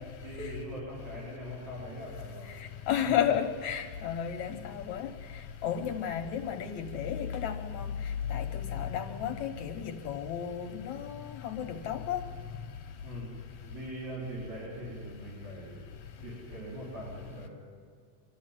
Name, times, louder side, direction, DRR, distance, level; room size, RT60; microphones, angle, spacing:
voice 1, 0.2-2.6 13.0-13.3 13.6-15.9 16.2-17.5, equal, 90° right, -6 dB, 6.4 m, -42 dB
voice 2, 2.9-5.1 5.6-7.9 8.3-12.2, left 9 dB, 65° left, 6 dB, 2.0 m, -32 dB
25.5 x 13.0 x 9.1 m, 2.1 s
omnidirectional pair, 4.1 m